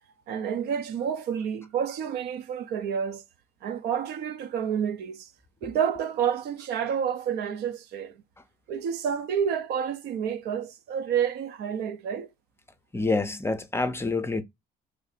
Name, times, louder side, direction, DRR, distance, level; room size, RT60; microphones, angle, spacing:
voice 1, 0.3-3.2 3.6-5.3 5.6-8.2 8.7-12.3, right 8 dB, 75° right, 0.7 m, -29 dB
voice 2, 12.9-14.4, left 3 dB, 15° left, 0.5 m, -27 dB
3.2 x 2.6 x 4.0 m
cardioid pair, 110°, 17 cm